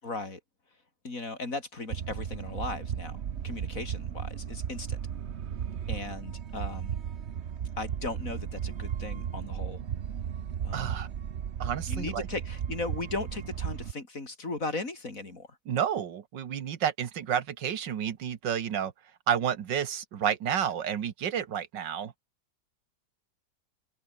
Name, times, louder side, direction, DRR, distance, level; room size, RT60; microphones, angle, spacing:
voice 1, 0.0-0.4 1.0-3.2 3.4-5.0 5.9-7.0 7.8-9.8 10.6-11.0 11.9-15.5, left 3 dB, 50° left, 4.3 m, -37 dB
sound 1, 1.9-13.9, right 8 dB, 45° right, 1.0 m, -35 dB
voice 2, 10.7-11.1 11.6-12.3 15.7-18.9 19.3-22.1, right 8 dB, 80° right, 2.0 m, -30 dB
open air
omnidirectional pair, 1.9 m